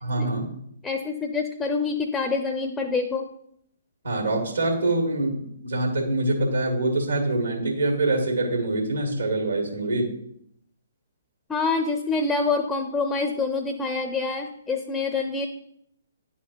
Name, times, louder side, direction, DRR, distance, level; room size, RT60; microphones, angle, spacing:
voice 1, 0.0-0.5 4.0-10.1, right 2 dB, 75° right, -2 dB, 2.0 m, -25 dB
voice 2, 0.8-3.3 11.5-15.5, left 4 dB, 10° left, 5 dB, 0.5 m, -26 dB
10.5 x 4.1 x 3.0 m, 0.72 s
figure-of-eight pair, 130°, 0 cm